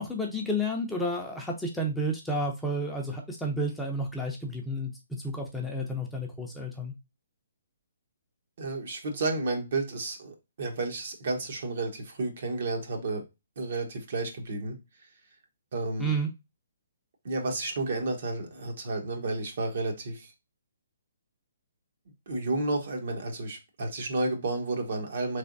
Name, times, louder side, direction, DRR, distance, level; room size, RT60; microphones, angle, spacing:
voice 1, 0.0-6.9 16.0-16.3, equal, 5° left, 0.6 m, -31 dB
voice 2, 8.6-13.2 13.6-14.8 15.7-16.1 17.2-20.3 22.3-25.4, right 2 dB, 60° right, 1.1 m, -31 dB
3.7 x 3.3 x 2.5 m
hypercardioid pair, 150°, 0 cm